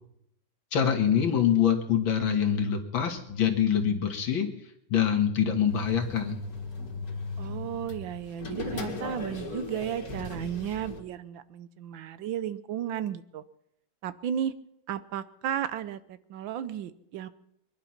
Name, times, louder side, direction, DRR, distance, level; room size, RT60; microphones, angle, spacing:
voice 1, 0.7-4.5 4.9-6.4, left 8 dB, 80° left, 6 dB, 2.4 m, -25 dB
sound 1, 5.7-11.0, left 3 dB, 50° left, 2.4 m, -37 dB
voice 2, 7.4-13.4 14.0-14.5 14.9-17.3, right 10 dB, 80° right, 14 dB, 1.5 m, -34 dB
22.5 x 11.0 x 5.8 m, 0.78 s
omnidirectional pair, 2.1 m